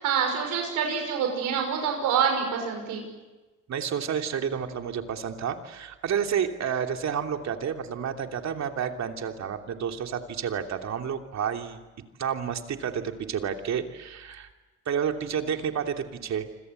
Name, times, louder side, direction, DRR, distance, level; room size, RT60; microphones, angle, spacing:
voice 1, 0.0-3.1, right 6 dB, 85° right, 3 dB, 6.0 m, -26 dB
voice 2, 3.7-11.8 12.2-14.5 14.9-16.5, right 8 dB, 65° right, 4 dB, 3.0 m, -30 dB
28.0 x 26.0 x 8.0 m, 1.2 s
cardioid pair, 90°, 30 cm